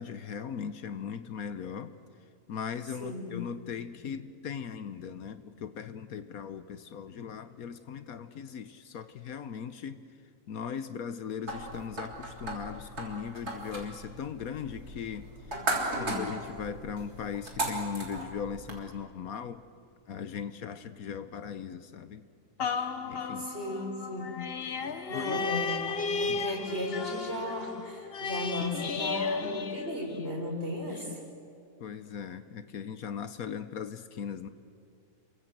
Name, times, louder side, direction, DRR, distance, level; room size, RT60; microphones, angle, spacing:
voice 1, 0.0-2.0 2.5-10.1 10.5-15.3 16.0-19.6 20.1-22.3 23.1-23.5 25.1-25.4 26.3-26.5 31.8-34.5, left 7 dB, 70° left, 11 dB, 1.3 m, -38 dB
voice 2, 3.0-3.4 15.5-16.2 23.4-24.4 25.1-31.2, left 1 dB, 40° right, 1 dB, 5.3 m, -36 dB
sound 1, 11.5-18.8, right 2 dB, 75° right, 4.0 m, -37 dB
sound 2, 22.6-30.4 31.0-31.1, left 5 dB, 45° left, 1.0 m, -34 dB
29.0 x 23.5 x 7.8 m, 2.4 s
omnidirectional pair, 1.6 m